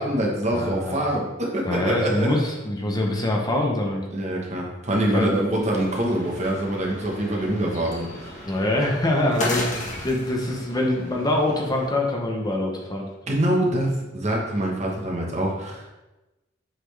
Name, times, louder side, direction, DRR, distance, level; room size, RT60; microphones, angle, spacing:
voice 1, 0.0-2.4 4.1-8.5 13.3-15.9, right 1 dB, 35° right, -1 dB, 1.2 m, -25 dB
voice 2, 0.5-1.0 1.7-4.1 5.1-5.4 8.5-13.1, left 1 dB, 20° left, 0 dB, 0.8 m, -24 dB
sound 1, 5.7-11.9, left 1 dB, 40° left, 1.5 m, -35 dB
7.9 x 4.2 x 3.3 m, 1.0 s
head